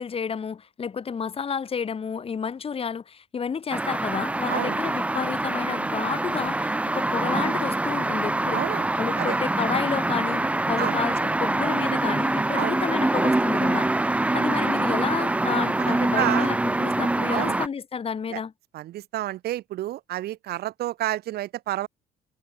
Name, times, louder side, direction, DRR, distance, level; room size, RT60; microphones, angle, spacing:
voice 1, 0.0-8.6 9.0-18.5, left 6 dB, 35° left, 3.1 m, -31 dB
sound 1, 3.7-17.7, right 2 dB, 10° right, 0.6 m, -25 dB
voice 2, 8.5-8.9 9.2-9.4 10.8-11.0 12.5-12.8 15.8-16.5 17.3-17.6 18.3-18.4 18.7-21.9, right 14 dB, 70° right, 1.7 m, -30 dB
cardioid pair, 110°, 17 cm